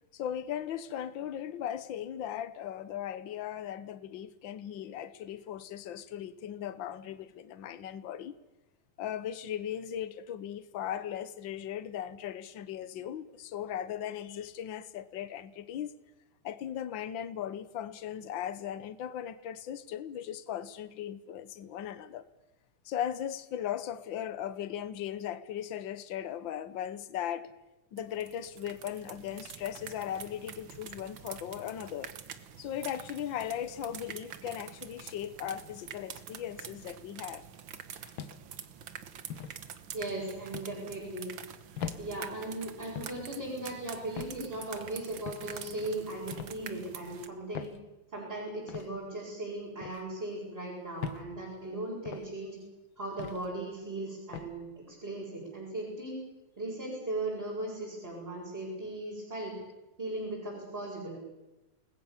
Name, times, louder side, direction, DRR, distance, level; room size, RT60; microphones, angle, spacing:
voice 1, 0.1-8.3 9.0-15.9 16.4-22.3 22.8-27.5 27.9-32.1 32.6-37.5, left 10 dB, 70° left, 1.1 m, -38 dB
sound 1, 28.0-47.3, right 8 dB, 55° right, 1.6 m, -46 dB
sound 2, 38.2-38.6 39.3-39.6 40.5-40.8 41.8-42.0 42.9-43.2 44.2-44.4 45.2-45.5 46.3-46.6 47.5-47.8 48.7-48.9 49.8-50.0 51.0-51.3 52.0-52.3 53.2-53.4 54.3-54.5, left 8 dB, 50° left, 1.6 m, -40 dB
voice 2, 39.9-41.3 42.0-47.7 48.1-52.6 53.0-56.2 56.6-59.5 60.0-61.2, right 1 dB, 15° right, 7.7 m, -38 dB
29.5 x 20.5 x 7.3 m
omnidirectional pair, 3.5 m